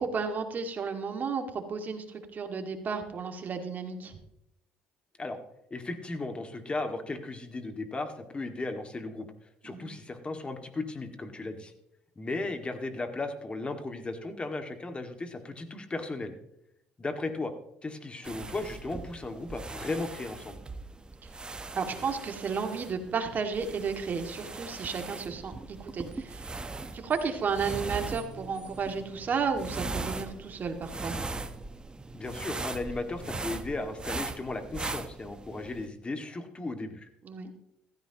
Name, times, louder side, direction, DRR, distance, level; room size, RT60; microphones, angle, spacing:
voice 1, 0.0-2.0 2.3-4.2 9.6-9.9 21.7-25.5 25.8-26.6 26.9-31.2 37.2-37.5, right 5 dB, 45° right, 5 dB, 2.1 m, -33 dB
voice 2, 5.7-11.7 12.2-16.4 17.0-17.5 17.8-20.6 32.1-37.1, left 2 dB, 25° left, 6 dB, 2.1 m, -36 dB
sound 1, 18.2-35.9, right 3 dB, 20° right, 1.1 m, -40 dB
15.5 x 14.0 x 3.0 m, 0.81 s
supercardioid pair, 75°, 4 cm